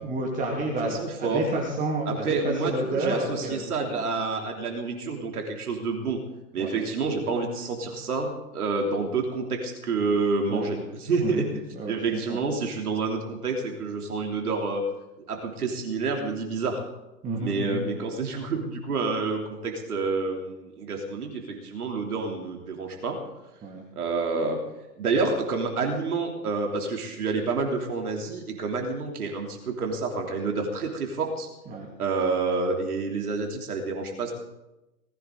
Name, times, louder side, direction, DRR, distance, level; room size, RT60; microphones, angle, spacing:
voice 1, 0.0-4.1 6.6-6.7 10.5-10.8 11.2-11.4 11.7-12.4 17.2-17.9 23.6-23.8 31.7-31.9, right 2 dB, 15° right, -1 dB, 2.2 m, -30 dB
voice 2, 1.0-1.4 2.1-6.2 6.5-11.5 11.9-14.9 15.3-16.8 17.4-23.2 23.9-24.6 25.0-31.5 32.0-34.3, right 4 dB, 60° right, 2 dB, 3.3 m, -28 dB
19.5 x 16.0 x 3.9 m, 0.99 s
figure-of-eight pair, 125°, 50 cm